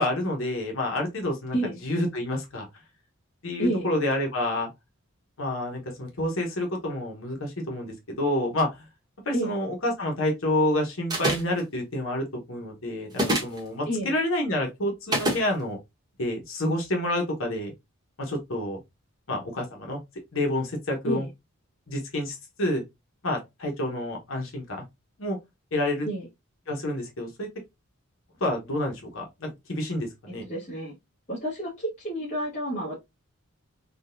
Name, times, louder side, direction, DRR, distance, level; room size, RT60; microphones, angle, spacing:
voice 1, 0.0-1.5 1.8-2.7 3.4-4.7 5.4-8.8 9.3-15.8 16.2-17.7 18.2-18.8 19.3-20.0 20.3-21.3 21.9-22.8 23.2-24.8 25.2-25.4 25.7-26.1 26.7-27.5 28.4-30.4, left 1 dB, 70° left, 1.0 m, -28 dB
voice 2, 3.6-3.9 9.3-9.6 13.8-14.2 21.0-21.3 26.0-26.3 30.4-30.9 31.3-33.0, right 1 dB, 35° left, 1.2 m, -30 dB
sound 1, 11.1-11.6 13.1-13.6 15.1-15.4, right 1 dB, 20° right, 1.0 m, -25 dB
3.7 x 2.3 x 2.5 m
head